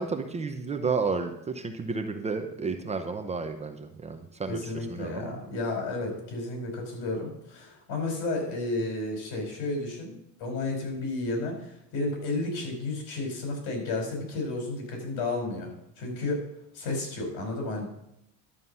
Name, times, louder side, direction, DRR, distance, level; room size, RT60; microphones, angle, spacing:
voice 1, 0.0-5.4, right 4 dB, 20° right, 6 dB, 0.6 m, -32 dB
voice 2, 4.5-16.4 16.7-17.9, left 2 dB, 70° left, 2 dB, 4.8 m, -32 dB
11.5 x 7.3 x 5.5 m, 0.80 s
cardioid pair, 145°, 37 cm